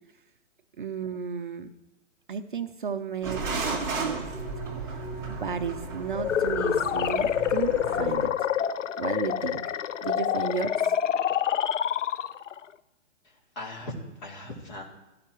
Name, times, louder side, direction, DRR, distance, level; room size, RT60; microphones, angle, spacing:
voice 1, 0.8-1.7 2.3-3.4 4.0-4.2 5.3-8.3 9.0-9.6 10.0-10.9, right 6 dB, 45° right, 7 dB, 0.6 m, -33 dB
sound 1, 3.2-8.3, right 4 dB, 10° right, 1.7 m, -34 dB
sound 2, 6.1-12.6, left 9 dB, 75° left, 0.6 m, -27 dB
voice 2, 13.2-14.8, left 1 dB, 35° left, -1 dB, 2.7 m, -39 dB
16.5 x 13.0 x 3.0 m, 1.0 s
hypercardioid pair, 175°, 37 cm